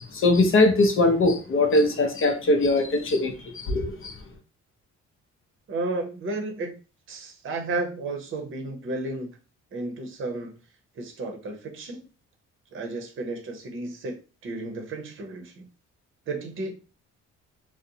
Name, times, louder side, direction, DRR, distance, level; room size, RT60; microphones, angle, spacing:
voice 1, 0.0-4.1, left 2 dB, 45° left, 0.6 m, -21 dB
voice 2, 5.7-6.7 7.1-9.3 9.7-10.5 11.0-12.1 12.7-14.2 14.4-15.6 16.3-16.7, right 2 dB, 45° right, 0.7 m, -32 dB
2.6 x 2.1 x 2.7 m
cardioid pair, 90°, 30 cm